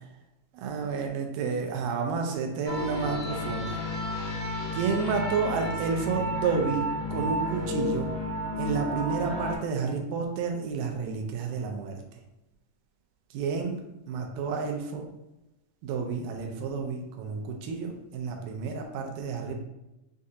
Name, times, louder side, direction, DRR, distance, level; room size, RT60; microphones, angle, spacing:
voice 1, 0.5-3.8 4.7-8.1 8.6-12.0 13.3-13.8 14.1-15.1 15.8-19.6, right 5 dB, 85° right, 3 dB, 2.2 m, -30 dB
sound 1, 2.6-9.6, left 1 dB, 70° left, 1.0 m, -32 dB
6.4 x 2.4 x 2.7 m, 0.96 s
omnidirectional pair, 3.7 m